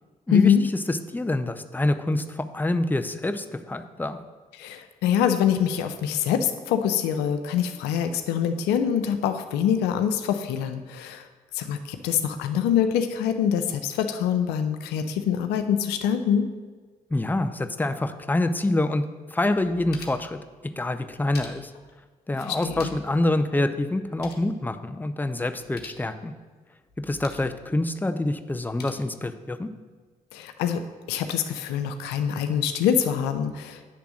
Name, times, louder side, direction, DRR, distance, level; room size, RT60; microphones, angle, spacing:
voice 1, 0.3-0.6 4.6-11.3 11.5-16.5 22.4-22.9 30.3-30.8 31.1-33.8, left 8 dB, 90° left, 8 dB, 0.5 m, -24 dB
voice 2, 0.9-4.2 17.1-19.0 19.3-20.4 20.8-21.7 22.3-26.3 27.0-29.7, left 2 dB, 10° left, 9 dB, 0.6 m, -26 dB
sound 1, 19.5-20.4 21.0-21.9 22.5-23.2 23.5-23.6 23.9-24.5 25.5-26.0 26.9-27.5 28.5-28.9, left 4 dB, 75° left, 1.0 m, -45 dB
8.5 x 3.5 x 6.2 m, 1.4 s
supercardioid pair, 50°, 16 cm